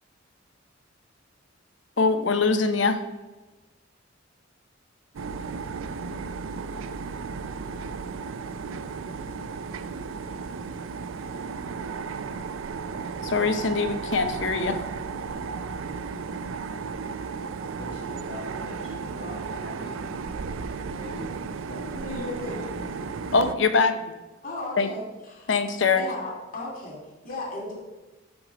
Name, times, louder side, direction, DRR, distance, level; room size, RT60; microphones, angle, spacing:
voice 1, 2.0-3.0 13.2-14.8 23.3-24.1 24.8-24.9 25.5-26.0, left 4 dB, 65° left, 9 dB, 0.7 m, -23 dB
sound 1, 5.1-23.6, right 5 dB, 80° right, 0.4 m, -34 dB
voice 2, 17.8-20.0 20.9-21.3 21.6-22.0 22.4-22.8, left 1 dB, 85° left, -5 dB, 1.9 m, -42 dB
voice 3, 21.9-22.5 23.1-23.2 24.4-25.5 25.9-27.7, left 2 dB, 45° left, -2 dB, 2.6 m, -35 dB
6.4 x 6.0 x 4.9 m, 1.1 s
head